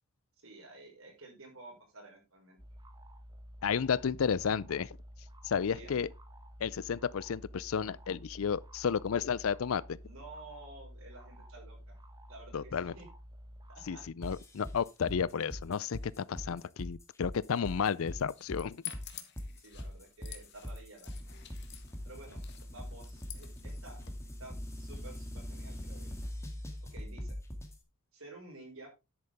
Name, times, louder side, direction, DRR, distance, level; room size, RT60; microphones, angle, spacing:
voice 1, 0.4-2.6 5.5-6.0 10.0-11.9 12.3-13.1 13.7-14.0 19.6-21.3 22.0-22.4 22.7-24.0 24.4-26.1 26.8-27.4 28.1-28.9, right 2 dB, 70° right, 5.1 m, -52 dB
sound 1, 2.6-14.1, equal, 20° right, 1.3 m, -51 dB
voice 2, 3.6-5.0 5.4-6.1 6.6-10.0 12.5-12.9 13.9-18.8, left 6 dB, 75° left, 0.5 m, -32 dB
sound 2, 14.2-27.8, equal, 15° left, 1.9 m, -42 dB
sound 3, 18.2-24.1, left 10 dB, 50° left, 1.7 m, -49 dB
10.5 x 8.6 x 3.5 m
head